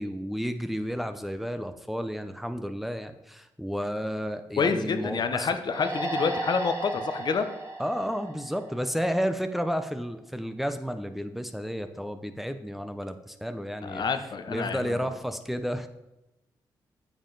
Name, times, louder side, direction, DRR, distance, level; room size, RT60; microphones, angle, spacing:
voice 1, 0.0-5.5 7.8-14.1 14.5-15.9, equal, ahead, 8 dB, 0.7 m, -32 dB
voice 2, 4.6-7.5 13.8-15.0, left 5 dB, 60° left, 8 dB, 0.8 m, -28 dB
sound 1, 5.7-9.2, right 2 dB, 30° right, 2.5 m, -35 dB
8.9 x 7.2 x 4.0 m, 0.94 s
supercardioid pair, 55°, 9 cm